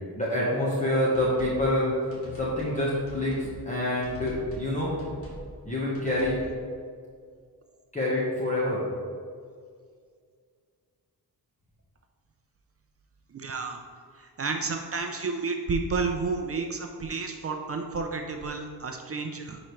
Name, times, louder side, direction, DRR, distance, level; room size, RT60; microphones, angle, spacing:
voice 1, 0.1-2.0 2.4-4.9 5.6-6.4 7.9-8.8, left 1 dB, 20° left, -6 dB, 1.2 m, -27 dB
sound 1, 1.1-1.6 2.1-2.8 3.1-3.5 4.0-4.7 5.0-5.5 5.9-6.4, left 2 dB, 35° left, 1.9 m, -42 dB
voice 2, 13.3-13.8 14.2-19.6, right 4 dB, 35° right, 4 dB, 0.5 m, -31 dB
10.0 x 5.1 x 3.2 m, 2.1 s
wide cardioid pair, 150°, 39 cm